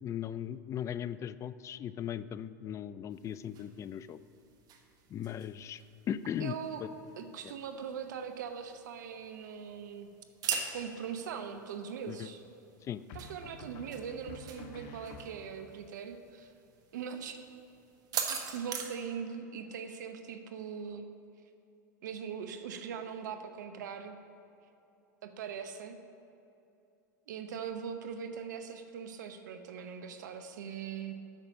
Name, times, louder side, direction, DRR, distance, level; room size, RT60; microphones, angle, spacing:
voice 1, 0.0-4.2 5.1-5.8 6.1-6.5 6.8-6.9 7.4-7.5 12.1-12.3 12.8-13.0, left 10 dB, 30° left, 16 dB, 0.3 m, -38 dB
sound 1, 3.1-18.9, right 7 dB, 40° right, 1.2 m, -44 dB
voice 2, 6.4-6.8 7.2-10.1 10.7-12.4 13.1-16.5 16.9-17.4 18.3-21.0 22.0-24.2 25.2-26.0 27.3-31.1, right 7 dB, 75° right, 7 dB, 0.8 m, -41 dB
sound 2, 10.4-11.0 13.1-15.8, left 2 dB, 55° left, 1.1 m, -50 dB
8.9 x 6.8 x 6.0 m, 2.8 s
hypercardioid pair, 90°, 10 cm